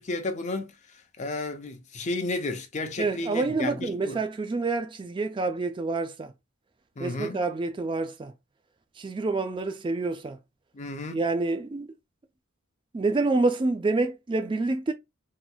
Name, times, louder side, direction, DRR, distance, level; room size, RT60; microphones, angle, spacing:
voice 1, 0.0-4.2 7.0-7.4 10.7-11.2, left 2 dB, 35° left, 0.6 m, -33 dB
voice 2, 3.0-6.3 7.0-8.3 9.0-10.4 11.1-11.9 12.9-14.9, right 3 dB, 25° right, 0.3 m, -27 dB
3.1 x 3.0 x 2.3 m
head